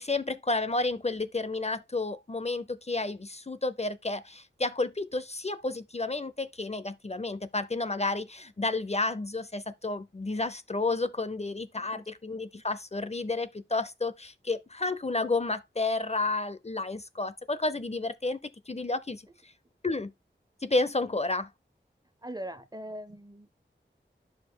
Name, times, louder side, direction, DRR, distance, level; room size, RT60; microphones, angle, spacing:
voice 1, 0.0-18.4 18.7-19.5 19.8-20.1 20.6-21.5, left 3 dB, 35° left, 0.5 m, -31 dB
voice 2, 22.2-23.5, right 1 dB, 20° right, 0.5 m, -41 dB
11.0 x 5.0 x 2.2 m
wide cardioid pair, 65°, 20 cm